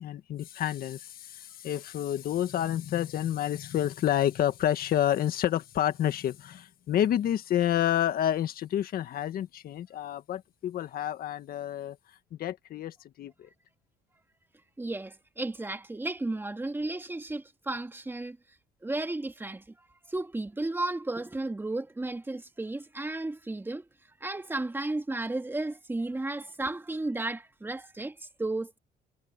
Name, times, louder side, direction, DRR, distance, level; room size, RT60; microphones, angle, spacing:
voice 1, 0.0-12.0 12.4-13.5, left 11 dB, 60° left, 1.8 m, -29 dB
voice 2, 14.8-18.4 18.8-19.6 20.1-23.8 24.2-28.8, right 2 dB, 10° right, 2.2 m, -33 dB
cardioid pair, 110°, 17 cm